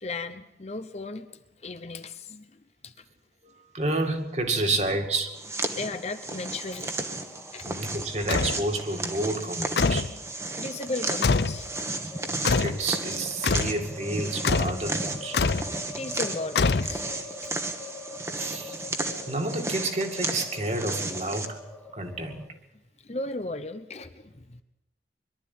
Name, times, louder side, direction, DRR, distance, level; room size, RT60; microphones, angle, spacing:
voice 1, 0.0-3.0 5.7-7.7 10.1-12.0 15.3-15.5 16.0-17.1 23.0-24.6, left 2 dB, 35° left, 10 dB, 0.9 m, -36 dB
voice 2, 3.4-5.3 7.6-10.1 12.4-15.4 18.4-18.8 19.3-21.6 21.9-22.4, right 2 dB, 40° right, 4 dB, 2.3 m, -30 dB
sound 1, 4.7-22.5, left 2 dB, 5° left, 1.2 m, -45 dB
sound 2, 5.3-21.5, right 2 dB, 15° right, 1.4 m, -34 dB
sound 3, 8.3-8.6 9.8-10.2 11.2-11.6 12.4-12.8 13.4-13.8 14.4-14.8 15.3-15.7 16.6-17.2, left 4 dB, 70° left, 0.6 m, -24 dB
22.0 x 12.5 x 9.6 m, 0.95 s
head